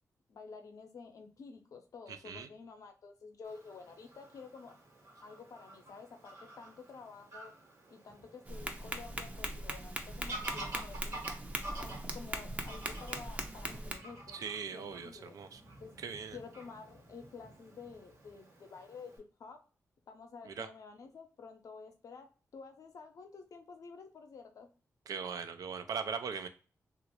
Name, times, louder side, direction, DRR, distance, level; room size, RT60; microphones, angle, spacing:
voice 1, 0.3-4.7 5.2-7.5 7.9-11.3 11.8-14.4 14.7-15.4 15.8-16.0 16.3-19.1 19.4-19.6 20.1-24.7, left 5 dB, 75° left, 5 dB, 0.6 m, -50 dB
Fowl / Bird vocalization bird call bird song, 3.4-19.2, right 1 dB, 60° right, 1.2 m, -50 dB
Tap, 8.4-13.9, right 1 dB, 25° right, 0.5 m, -40 dB
voice 2, 14.3-15.6 16.0-16.4 20.5-20.7 25.1-26.5, right 6 dB, 90° right, 9 dB, 0.4 m, -40 dB
3.0 x 2.4 x 2.9 m, 0.37 s
wide cardioid pair, 90°, 6 cm